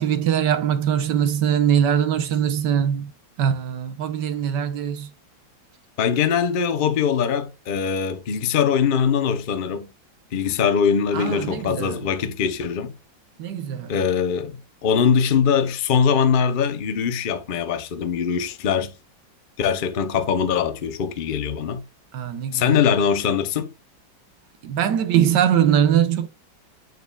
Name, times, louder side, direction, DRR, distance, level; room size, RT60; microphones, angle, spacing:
voice 1, 0.0-3.1 3.4-5.1 11.1-12.1 13.4-13.9 22.1-22.8 24.6-26.3, right 9 dB, 70° right, 1.3 m, -22 dB
voice 2, 6.0-9.9 10.3-12.9 13.9-18.9 19.6-21.8 22.5-23.7, left 7 dB, 65° left, 0.5 m, -22 dB
9.3 x 4.7 x 2.3 m
omnidirectional pair, 2.1 m